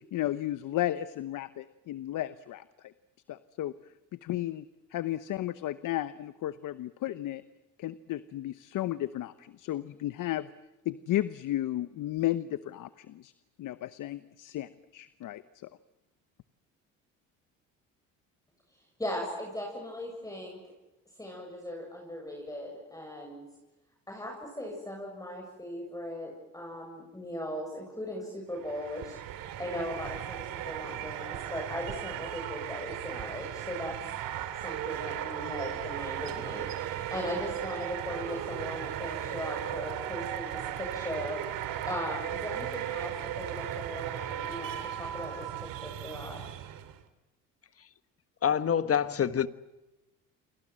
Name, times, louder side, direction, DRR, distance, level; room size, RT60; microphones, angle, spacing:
voice 1, 0.0-2.9 3.3-3.7 4.1-7.4 7.8-10.5 10.8-13.3 13.6-15.7, left 14 dB, 60° left, 1.0 m, -34 dB
voice 2, 19.0-20.6 21.2-23.5 24.1-34.0 34.6-46.4, left 1 dB, 10° left, 7.5 m, -38 dB
sound 1, 28.5-47.0, right 11 dB, 70° right, 2.4 m, -36 dB
voice 3, 48.4-49.5, left 8 dB, 40° left, 1.4 m, -26 dB
29.0 x 24.0 x 7.7 m
supercardioid pair, 75°, 36 cm